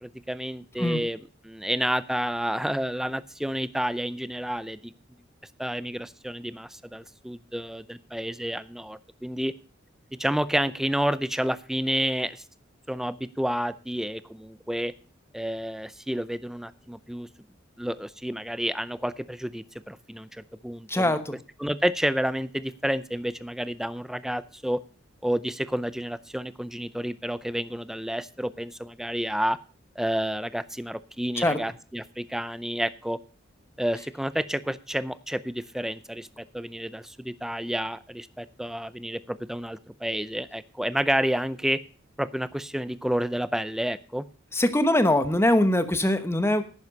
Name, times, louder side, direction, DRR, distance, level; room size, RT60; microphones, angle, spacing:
voice 1, 0.0-4.8 5.6-9.5 10.2-12.4 12.9-14.9 15.3-17.3 17.8-21.2 21.6-24.8 25.2-29.6 30.0-33.2 33.8-36.3 36.5-41.8 42.2-44.3, equal, ahead, 15 dB, 0.5 m, -30 dB
voice 2, 20.9-21.4 31.4-31.6 44.5-46.6, left 1 dB, 15° left, 10 dB, 1.1 m, -22 dB
11.0 x 9.7 x 5.4 m, 0.38 s
head